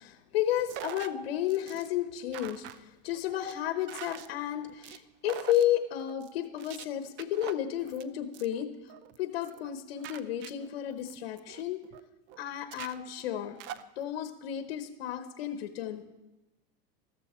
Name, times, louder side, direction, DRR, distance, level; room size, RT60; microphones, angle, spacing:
voice 1, 0.0-8.9 9.2-11.8 12.4-13.6 14.0-16.1, left 11 dB, 85° left, 8 dB, 1.0 m, -32 dB
sound 1, 0.7-1.1 1.5-1.9 2.3-2.8 3.1-3.5 3.9-4.3 4.6-5.0 5.3-5.7 6.0-6.3 6.6-6.8 7.2-8.0 8.3-8.6 8.9-9.2 9.4-9.7 10.0-12.0 12.3-12.4 12.7-13.8, right 11 dB, 40° right, 0.6 m, -44 dB
13.5 x 13.5 x 4.4 m, 1.0 s
supercardioid pair, 145°, 30 cm